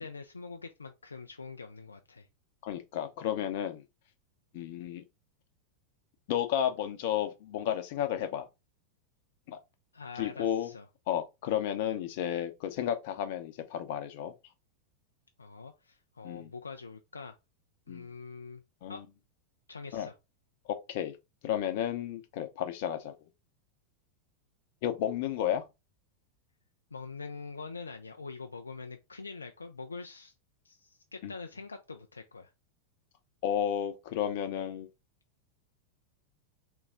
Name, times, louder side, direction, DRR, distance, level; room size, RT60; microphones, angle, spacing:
voice 1, 0.0-2.3 9.9-10.9 15.4-17.4 17.9-18.6 18.9-19.0 19.7-20.1 26.9-30.3 30.6-32.5, left 4 dB, 75° left, 0.4 m, -44 dB
voice 2, 2.6-3.8 4.5-5.0 6.3-8.5 9.5-9.6 10.2-10.7 11.1-14.3 16.2-16.5 17.9-18.1 18.8-19.1 19.9-20.1 20.9-21.1 21.4-23.1 24.8-25.6 31.2-31.3 33.4-34.9, left 10 dB, 50° left, 0.7 m, -32 dB
3.5 x 3.0 x 3.7 m
figure-of-eight pair, 90°, 0 cm